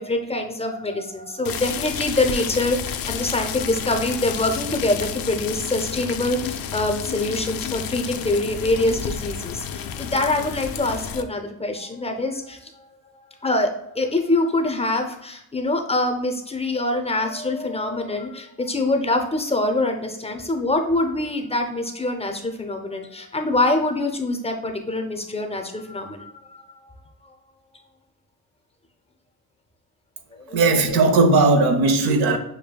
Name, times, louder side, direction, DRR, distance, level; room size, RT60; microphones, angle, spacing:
voice 1, 0.0-12.9 13.4-26.3 30.5-30.6, left 2 dB, 15° left, 4 dB, 0.5 m, -24 dB
sound 1, 1.4-11.2, left 7 dB, 70° left, 0.5 m, -31 dB
voice 2, 30.5-32.4, right 3 dB, 90° right, 5 dB, 0.7 m, -17 dB
6.7 x 2.6 x 2.2 m, 0.81 s
cardioid pair, 95°, 37 cm